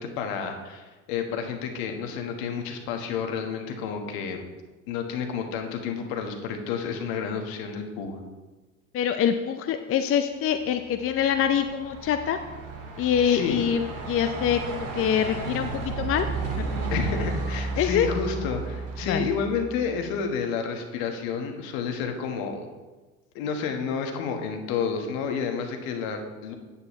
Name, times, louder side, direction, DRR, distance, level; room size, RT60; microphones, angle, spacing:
voice 1, 0.0-4.4 4.9-8.2 13.2-13.6 16.9-22.7 23.3-26.5, left 6 dB, 65° left, 4 dB, 1.5 m, -30 dB
voice 2, 8.9-12.4 13.0-16.3 16.7-16.9 17.8-18.1 19.0-19.3, left 8 dB, 35° left, 8 dB, 0.6 m, -25 dB
Truck, 10.7-20.1, right 3 dB, 55° right, 2.2 m, -33 dB
9.5 x 8.6 x 3.1 m, 1.2 s
hypercardioid pair, 70°, 39 cm